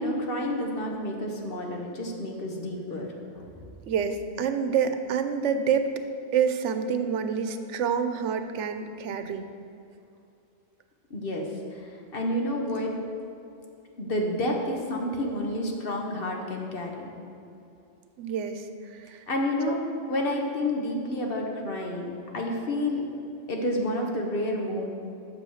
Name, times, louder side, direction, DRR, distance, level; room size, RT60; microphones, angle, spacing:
voice 1, 0.0-3.5 11.1-12.9 14.0-17.1 19.3-19.8 20.1-23.0 23.5-24.9, left 1 dB, 55° left, 1 dB, 1.4 m, -30 dB
voice 2, 3.9-5.9 6.3-9.5 18.2-18.6 18.9-19.2 19.7-19.8, right 7 dB, 90° right, 9 dB, 1.0 m, -27 dB
8.4 x 6.8 x 6.4 m, 2.7 s
omnidirectional pair, 1.2 m